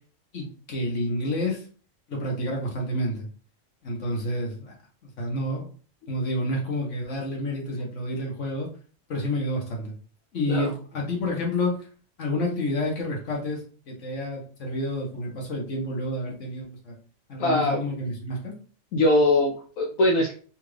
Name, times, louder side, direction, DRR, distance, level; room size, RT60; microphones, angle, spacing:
voice 1, 0.3-1.6 2.1-3.3 3.8-4.7 5.0-5.7 6.1-8.7 9.1-9.9 10.3-11.8 12.2-13.6 13.9-16.9 17.3-18.5, left 1 dB, 65° left, -1 dB, 1.5 m, -29 dB
voice 2, 17.4-17.8 18.9-20.3, left 1 dB, 85° left, 0 dB, 1.1 m, -21 dB
4.4 x 2.4 x 3.3 m, 0.42 s
omnidirectional pair, 1.3 m